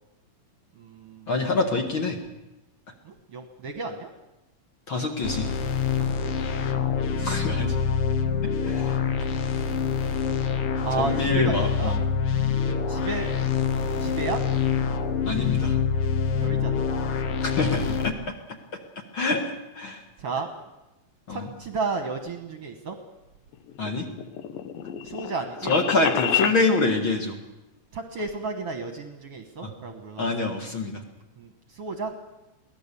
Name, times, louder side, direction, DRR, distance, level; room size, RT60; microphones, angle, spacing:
voice 1, 0.8-1.3 3.0-4.1 6.0-6.9 10.8-12.0 12.7-13.3 13.8-14.4 16.4-16.9 20.2-20.5 21.3-23.0 25.0-25.7 27.9-30.3 31.4-32.1, right 4 dB, 55° right, 5 dB, 1.8 m, -33 dB
voice 2, 1.3-2.2 4.9-5.5 7.2-7.8 8.6-9.0 11.0-12.0 15.3-15.8 17.4-18.1 19.1-20.0 21.3-21.5 23.8-24.1 25.7-27.4 29.6-29.7 30.2-31.0, left 3 dB, 45° left, 2 dB, 2.0 m, -26 dB
sound 1, 5.2-18.1, left 6 dB, 60° left, 1.5 m, -26 dB
sound 2, 23.5-26.6, left 9 dB, 90° left, 2.7 m, -29 dB
23.0 x 17.5 x 6.9 m, 0.97 s
omnidirectional pair, 3.9 m